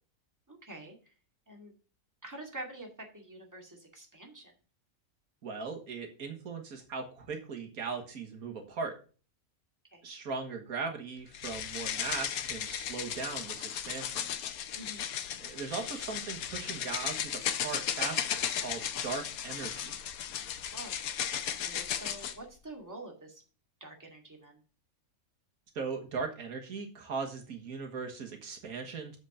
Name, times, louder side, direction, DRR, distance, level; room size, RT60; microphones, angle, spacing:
voice 1, 0.5-1.0 1.5-1.7 2.2-2.9 3.1-4.5 9.9-10.1 14.7-15.0 20.7-21.0 21.6-23.4 23.8-24.6, right 1 dB, 10° right, 1 dB, 2.1 m, -46 dB
voice 2, 5.4-9.0 10.0-14.2 15.4-20.0 25.8-29.2, right 4 dB, 85° right, 3 dB, 1.9 m, -39 dB
sound 1, 11.3-22.4, left 9 dB, 80° left, 1.2 m, -35 dB
7.7 x 5.1 x 7.0 m, 0.37 s
omnidirectional pair, 1.5 m